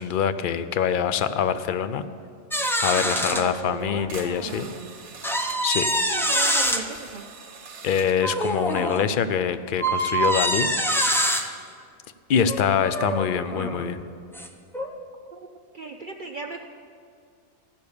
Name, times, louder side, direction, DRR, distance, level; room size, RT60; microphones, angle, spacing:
voice 1, 0.0-2.0 2.8-4.7 5.6-5.8 7.8-10.7 12.3-14.0, left 8 dB, 65° left, 12 dB, 0.5 m, -24 dB
sound 1, 2.5-3.4 4.1-4.2 5.2-6.8 8.2-9.1 9.8-11.5 12.5-13.9 14.3-14.5 14.7-14.9, right 1 dB, 5° left, 0.4 m, -25 dB
voice 2, 3.1-5.0 5.8-7.3 13.5-13.8 15.3-15.5 15.7-16.6, right 4 dB, 60° right, 4 dB, 0.5 m, -36 dB
sound 2, 3.8-3.9 4.1-5.8 6.3-8.3, right 5 dB, 75° right, 1.6 m, -42 dB
14.0 x 6.7 x 8.5 m, 2.3 s
omnidirectional pair, 1.5 m